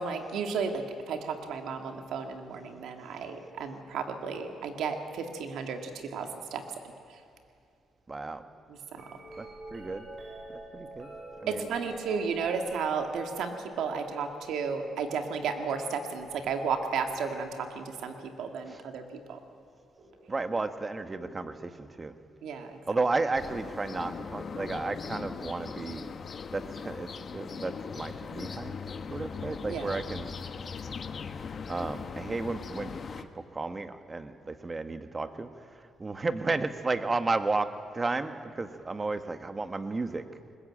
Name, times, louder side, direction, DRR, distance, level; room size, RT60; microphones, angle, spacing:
voice 1, 0.0-6.6 8.9-9.0 11.5-19.4 22.4-22.8 29.6-30.0, right 5 dB, 75° right, 5 dB, 2.2 m, -33 dB
voice 2, 8.1-8.4 9.4-10.1 10.5-11.1 11.4-11.7 18.7-18.8 20.3-22.1 22.9-26.1 26.5-28.8 29.1-30.3 31.7-35.5 36.0-40.2, right 3 dB, 25° right, 10 dB, 1.3 m, -33 dB
sound 1, 8.9-19.0 20.0-20.4 21.1-22.1 23.9-24.0, right 1 dB, 55° right, 6.5 m, -48 dB
sound 2, 23.3-33.2, left 5 dB, 45° left, 1.2 m, -39 dB
21.0 x 20.0 x 8.8 m, 2.5 s
cardioid pair, 90°, 0 cm